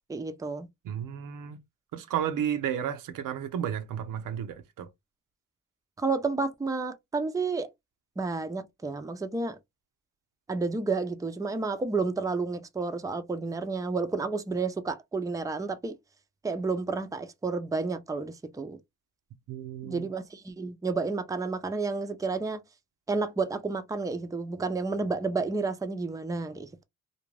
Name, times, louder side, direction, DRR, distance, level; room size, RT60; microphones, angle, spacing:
voice 1, 0.1-0.7 6.0-7.7 8.2-9.6 10.5-16.0 16.4-18.8 19.8-22.6 23.1-26.8, right 4 dB, 10° right, 0.4 m, -31 dB
voice 2, 0.8-1.6 1.9-4.9 19.5-20.1, right 9 dB, 80° right, 0.6 m, -32 dB
2.5 x 2.2 x 3.1 m
cardioid pair, 70°, 32 cm